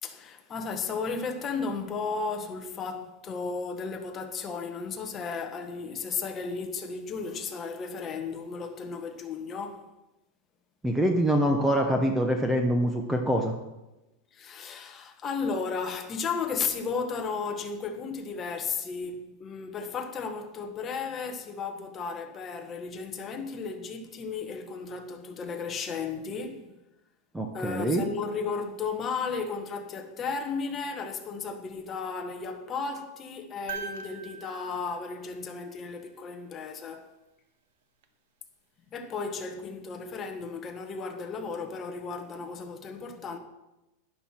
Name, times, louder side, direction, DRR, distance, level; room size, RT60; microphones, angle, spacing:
voice 1, 0.0-9.9 14.3-26.8 27.5-37.1 38.9-43.4, left 5 dB, 20° left, 1.1 m, -34 dB
voice 2, 10.8-13.5 27.3-28.0, equal, 5° right, 0.8 m, -25 dB
sound 1, 33.7-36.0 38.0-38.1, right 6 dB, 70° right, 1.4 m, -42 dB
12.0 x 11.5 x 4.4 m
supercardioid pair, 170°, 0 cm